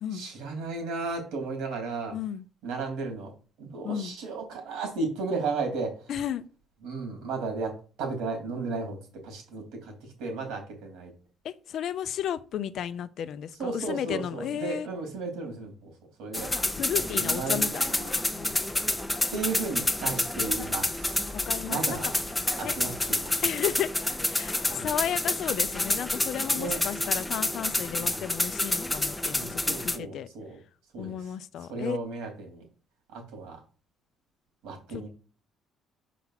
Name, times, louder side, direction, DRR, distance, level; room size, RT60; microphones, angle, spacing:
voice 1, 0.1-2.2 2.6-3.3 3.6-6.1 6.8-7.7 8.0-9.0 9.2-9.9 10.2-11.1 13.6-15.9 16.2-16.5 16.9-18.1 19.3-21.3 21.6-22.1 22.6-23.3 24.6-24.9 26.5-26.8 28.0-28.3 29.3-30.6 30.9-31.3 31.7-32.7 33.1-33.6 34.6-35.1, right 4 dB, 85° right, 3.2 m, -34 dB
voice 2, 2.1-2.4 3.8-4.1 6.1-6.4 11.4-14.9 16.8-18.0 18.3-18.7 21.3-22.0 22.6-22.8 23.4-23.9 24.3-29.6 29.8-30.3 31.0-32.0 34.9-35.0, left 9 dB, 55° left, 0.6 m, -33 dB
sound 1, 16.3-30.0, left 1 dB, 5° left, 0.6 m, -29 dB
5.8 x 5.0 x 5.8 m
cardioid pair, 140°, 0 cm